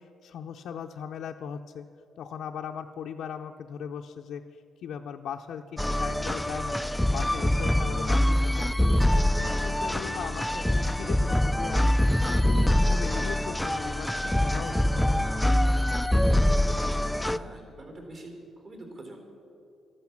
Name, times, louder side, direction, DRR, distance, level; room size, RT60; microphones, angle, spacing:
voice 1, 0.0-1.9 2.2-15.2, left 8 dB, 75° left, 1 dB, 0.6 m, -39 dB
sound 1, 5.8-17.4, left 1 dB, 5° left, 0.3 m, -24 dB
voice 2, 16.6-19.2, right 1 dB, 45° right, 2 dB, 3.8 m, -45 dB
13.5 x 12.0 x 7.2 m, 2.8 s
cardioid pair, 125°, 0 cm